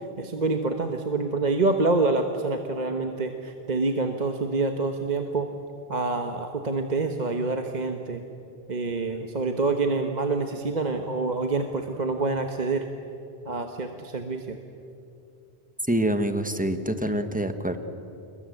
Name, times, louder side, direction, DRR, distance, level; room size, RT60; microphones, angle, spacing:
voice 1, 0.2-5.5 5.9-8.2 8.7-12.8 13.4-14.6, right 3 dB, 45° right, 5 dB, 1.3 m, -26 dB
voice 2, 15.9-17.8, right 1 dB, 10° right, 8 dB, 1.3 m, -26 dB
28.5 x 21.5 x 7.8 m, 2.6 s
omnidirectional pair, 1.1 m